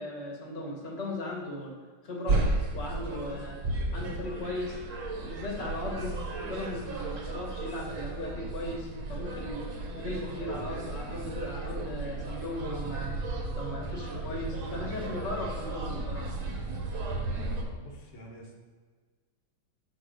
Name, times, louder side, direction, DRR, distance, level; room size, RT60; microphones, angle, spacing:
voice 1, 0.0-1.8 2.0-2.4 2.7-3.6 3.9-4.8 5.1-16.3, left 1 dB, 35° left, -1 dB, 1.5 m, -37 dB
sound 1, 2.3-17.6, right 2 dB, 50° right, 1.1 m, -34 dB
voice 2, 17.2-18.6, equal, 85° left, -1 dB, 1.9 m, -49 dB
6.6 x 4.8 x 5.0 m, 1.5 s
omnidirectional pair, 2.1 m